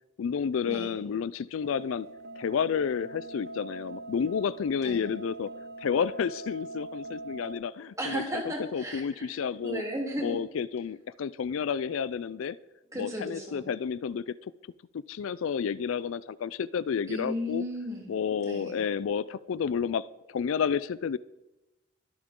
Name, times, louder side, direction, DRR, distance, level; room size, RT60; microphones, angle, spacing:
voice 1, 0.2-2.1 2.4-5.5 5.8-8.2 8.7-9.8 10.2-12.6 13.0-14.3 14.9-17.6 18.1-21.2, left 7 dB, 70° left, 18 dB, 0.4 m, -30 dB
sound 1, 1.6-7.5, right 2 dB, 50° right, 1.2 m, -43 dB
voice 2, 8.0-10.4 12.9-13.7 17.1-18.1 18.4-18.8, equal, 15° right, -2 dB, 3.3 m, -35 dB
22.5 x 8.6 x 3.7 m, 0.97 s
head